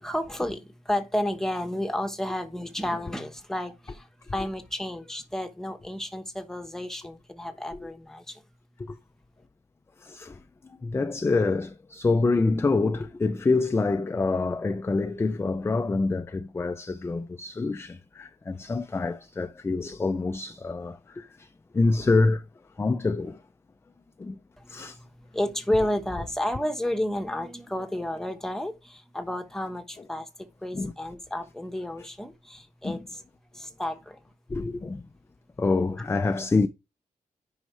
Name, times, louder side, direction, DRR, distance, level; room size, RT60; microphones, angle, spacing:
voice 1, 0.0-8.4 24.6-24.7 25.0-25.1 25.3-30.3 30.6-33.2 33.5-34.2, left 1 dB, 5° left, 1.1 m, -31 dB
voice 2, 10.0-22.5 22.8-23.4 24.2-24.4 24.7-25.0 30.7-30.9 32.8-33.0 34.5-35.1 35.6-36.7, left 3 dB, 20° left, 0.4 m, -26 dB
9.4 x 5.6 x 3.2 m
wide cardioid pair, 135°, 13 cm